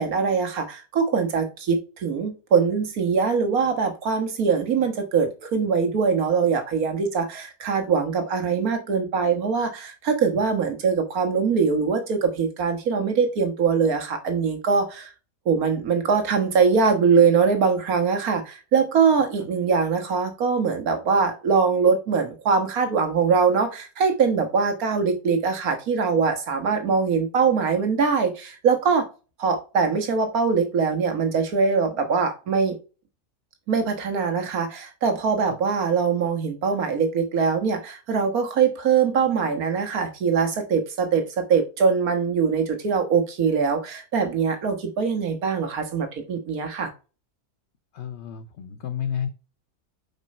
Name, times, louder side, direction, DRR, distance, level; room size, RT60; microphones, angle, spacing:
voice 1, 0.0-15.1 15.5-29.1 29.4-32.8 33.7-46.9, right 5 dB, 70° right, 1.8 m, -22 dB
voice 2, 47.9-49.3, left 8 dB, 55° left, 0.9 m, -31 dB
5.3 x 4.9 x 4.2 m
omnidirectional pair, 1.6 m